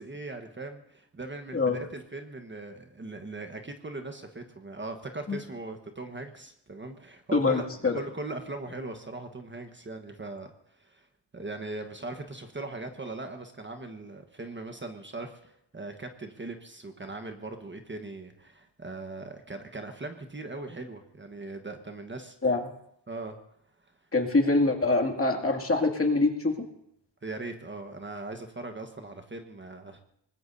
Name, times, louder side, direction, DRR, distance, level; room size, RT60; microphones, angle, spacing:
voice 1, 0.0-7.6 7.9-10.5 10.8-11.1 11.3-22.5 23.1-23.4 27.2-30.0, right 2 dB, 25° right, 5 dB, 1.3 m, -40 dB
voice 2, 7.3-8.0 22.4-22.6 24.1-26.6, left 3 dB, 30° left, 2 dB, 2.4 m, -24 dB
25.0 x 20.0 x 2.7 m, 0.73 s
wide cardioid pair, 100°, 43 cm